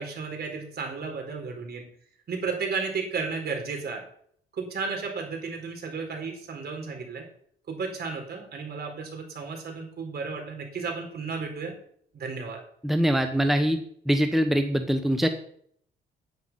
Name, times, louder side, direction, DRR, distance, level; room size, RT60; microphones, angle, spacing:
voice 1, 0.0-1.8 2.3-4.0 4.5-7.2 7.7-11.7 12.1-12.6, right 4 dB, 55° right, 2 dB, 4.4 m, -33 dB
voice 2, 12.8-13.8 14.1-15.3, equal, ahead, 7 dB, 1.1 m, -23 dB
10.0 x 9.5 x 5.7 m, 0.63 s
cardioid pair, 90°, 20 cm